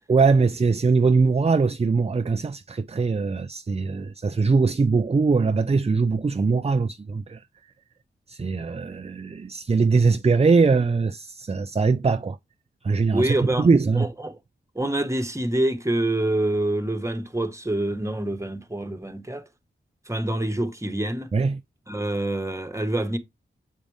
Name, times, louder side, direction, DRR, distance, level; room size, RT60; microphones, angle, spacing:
voice 1, 0.1-7.4 8.3-12.4 12.8-14.1 21.3-21.6, right 4 dB, 30° right, 0.5 m, -21 dB
voice 2, 13.1-13.7 13.9-14.4 14.7-19.5 20.1-21.3 21.9-23.2, right 1 dB, 15° right, 1.5 m, -26 dB
7.5 x 5.0 x 3.6 m
cardioid pair, 40°, 20 cm